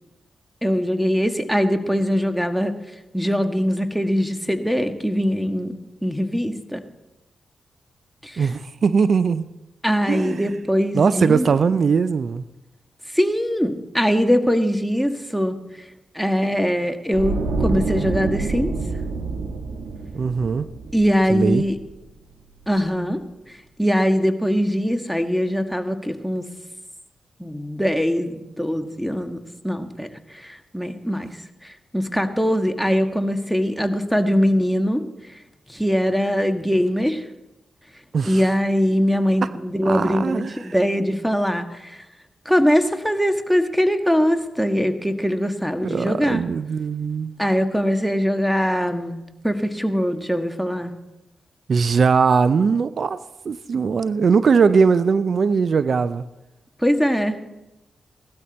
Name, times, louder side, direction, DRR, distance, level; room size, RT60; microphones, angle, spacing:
voice 1, 0.6-2.7 3.1-5.7 6.0-6.8 8.2-8.5 9.8-11.5 13.1-15.6 16.1-18.7 20.9-21.8 22.7-23.2 23.8-26.4 27.4-29.4 29.6-31.3 31.6-35.0 35.7-37.2 38.2-42.0 42.4-46.4 47.4-50.9 56.8-57.4, equal, ahead, 6 dB, 1.6 m, -22 dB
voice 2, 8.4-9.5 10.1-10.5 10.9-12.4 20.1-20.7 21.3-21.6 38.1-38.4 39.4-39.5 39.8-40.8 45.8-47.4 51.7-56.2, right 5 dB, 65° right, 15 dB, 0.5 m, -20 dB
sound 1, 17.1-22.2 22.5-22.7, right 3 dB, 80° right, 1.7 m, -27 dB
17.5 x 12.5 x 4.1 m, 0.98 s
supercardioid pair, 40°, 0 cm